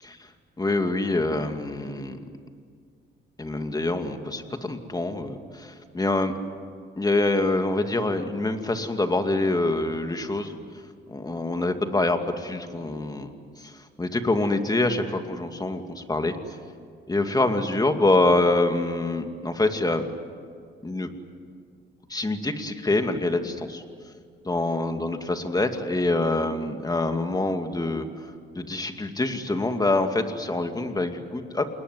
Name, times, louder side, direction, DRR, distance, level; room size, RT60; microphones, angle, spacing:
voice 1, 0.6-2.2 3.4-6.3 7.0-10.6 11.1-13.3 13.6-16.4 17.1-20.1 20.8-21.1 22.1-23.8 24.4-28.1 28.5-31.7, left 2 dB, 20° left, 6 dB, 2.4 m, -25 dB
28.5 x 20.0 x 9.6 m, 2.1 s
cardioid pair, 90°, 20 cm